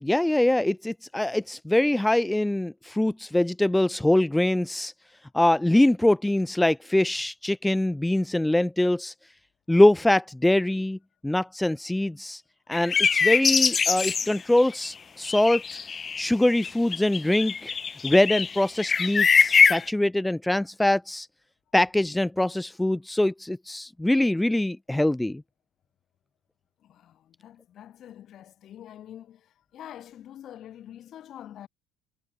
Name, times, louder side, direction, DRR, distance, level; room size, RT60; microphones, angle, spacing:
voice 1, 0.0-4.9 5.3-9.1 9.7-11.0 11.2-12.4 12.7-15.8 16.2-17.7 18.0-21.3 21.7-25.4, left 1 dB, 5° left, 0.4 m, -23 dB
sound 1, 12.7-14.9 15.2-16.2 16.6-19.9, left 6 dB, 30° left, 1.3 m, -23 dB
voice 2, 26.8-31.7, left 11 dB, 55° left, 7.6 m, -45 dB
supercardioid pair, 80°, 0 cm